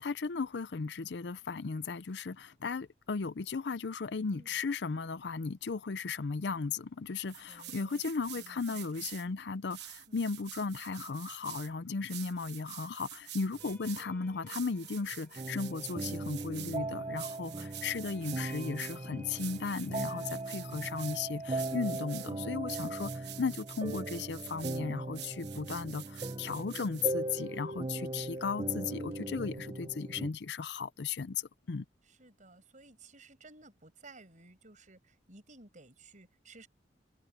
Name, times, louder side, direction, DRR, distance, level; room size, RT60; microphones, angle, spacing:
voice 1, 0.0-31.4 31.7-31.8, left 4 dB, 70° left, 0.5 m, -36 dB
sound 1, 7.2-9.3 9.7-11.7 12.1-14.1 14.5-16.8 17.2-19.0 19.4-21.2 21.6-22.3 22.7-24.8 25.1-27.1, right 14 dB, 70° right, 1.2 m, -47 dB
voice 2, 7.5-8.0 8.4-9.1 10.1-10.2 13.6-14.1 32.1-36.7, right 3 dB, 45° right, 6.5 m, -56 dB
sound 2, 13.5-21.8, left 1 dB, 10° left, 3.9 m, -59 dB
sound 3, 15.4-30.3, right 2 dB, 30° right, 0.6 m, -39 dB
head